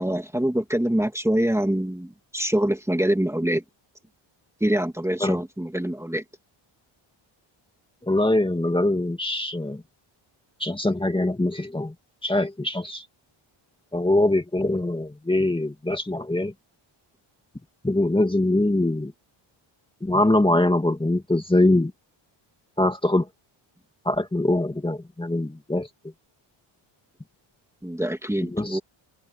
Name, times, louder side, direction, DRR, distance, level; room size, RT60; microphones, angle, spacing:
voice 1, 0.0-3.6 4.6-6.2 27.8-28.8, right 1 dB, 5° right, 2.3 m, -25 dB
voice 2, 8.0-9.8 10.6-11.9 12.2-13.0 13.9-16.5 17.8-19.1 20.0-21.9 22.8-23.3 24.1-25.9 28.5-28.8, left 1 dB, 10° left, 2.2 m, -23 dB
cardioid pair, 105°, 50 cm